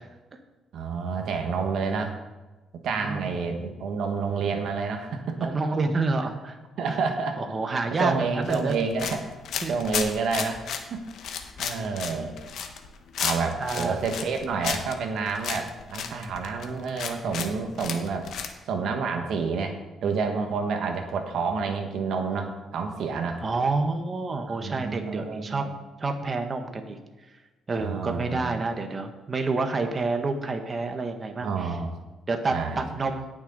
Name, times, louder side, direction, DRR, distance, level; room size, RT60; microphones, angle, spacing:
voice 1, 0.7-2.1 2.8-5.5 6.8-7.4 8.0-9.3 9.7-10.6 10.9-11.0 11.6-12.4 13.2-18.3 18.7-23.4 24.5-25.7 27.8-28.6 31.4-31.9 32.5-33.1, right 5 dB, 75° right, 5 dB, 1.4 m, -29 dB
voice 2, 3.0-3.3 5.4-6.6 6.9-7.0 7.4-8.8 9.6-9.7 11.7-12.0 13.6-13.9 17.2-17.3 23.4-25.7 26.0-27.0 27.7-31.7 32.3-33.3, right 3 dB, 35° right, 5 dB, 1.2 m, -28 dB
sound 1, 8.4-18.5, left 7 dB, 75° left, 1.1 m, -33 dB
17.5 x 6.3 x 4.0 m, 1.2 s
cardioid pair, 90°, 0 cm